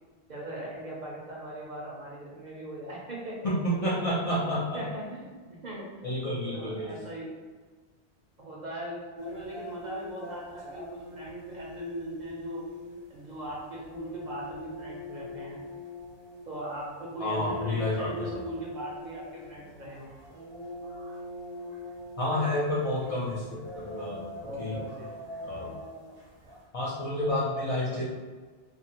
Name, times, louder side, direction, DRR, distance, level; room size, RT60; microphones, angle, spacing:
voice 1, 0.3-3.5 4.3-4.4 4.7-6.0 6.5-7.3 8.4-12.7 13.1-15.6 16.5-20.1 24.4-25.1, right 1 dB, 50° right, -4 dB, 0.7 m, -39 dB
voice 2, 3.4-4.9 6.0-6.9 17.2-18.4 22.2-24.3 24.6-24.8 25.4-25.7 26.7-28.0, left 1 dB, 50° left, -8 dB, 0.4 m, -30 dB
sound 1, 9.2-26.6, left 1 dB, 70° right, 1.1 m, -43 dB
2.5 x 2.4 x 2.8 m, 1.4 s
omnidirectional pair, 1.1 m